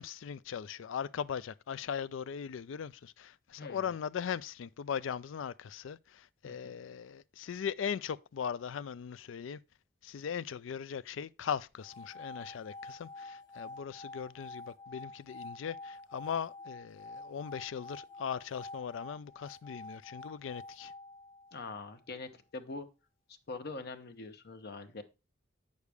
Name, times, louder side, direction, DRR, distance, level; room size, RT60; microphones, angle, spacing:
voice 1, 0.0-9.6 10.0-20.9, left 7 dB, 75° left, 0.4 m, -39 dB
voice 2, 3.6-3.9 6.4-6.7 21.5-22.9 23.5-25.0, left 3 dB, 55° left, 0.8 m, -43 dB
sound 1, 11.8-21.9, left 2 dB, 20° left, 0.7 m, -48 dB
8.3 x 6.5 x 3.4 m
head